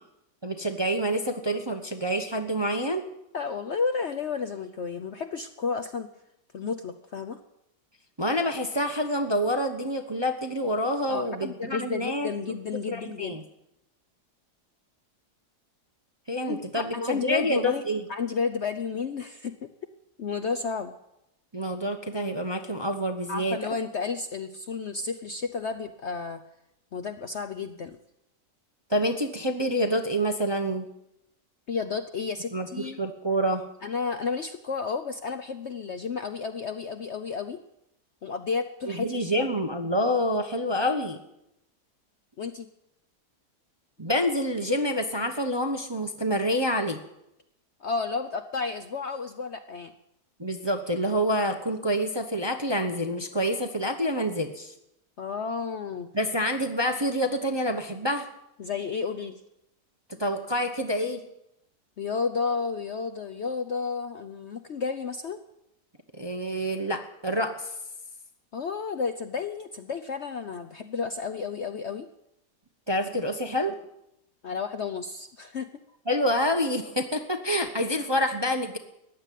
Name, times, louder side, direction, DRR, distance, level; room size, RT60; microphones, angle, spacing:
voice 1, 0.4-3.0 8.2-13.4 16.3-18.0 21.5-23.7 28.9-30.9 32.5-33.6 38.9-41.2 44.0-47.0 50.4-54.7 56.1-58.3 60.2-61.2 66.1-67.7 72.9-73.7 76.1-78.8, equal, 20° right, 4 dB, 0.8 m, -27 dB
voice 2, 3.3-6.1 6.5-7.4 11.1-13.4 16.5-17.8 18.1-19.7 20.2-20.9 23.3-26.4 26.9-28.0 31.7-33.0 33.8-37.6 38.2-39.5 42.4-42.7 47.8-49.9 55.2-56.1 58.6-59.4 62.0-65.4 68.5-72.1 74.4-75.7, left 5 dB, 55° left, 8 dB, 0.8 m, -32 dB
14.5 x 9.9 x 9.1 m, 0.84 s
omnidirectional pair, 1.8 m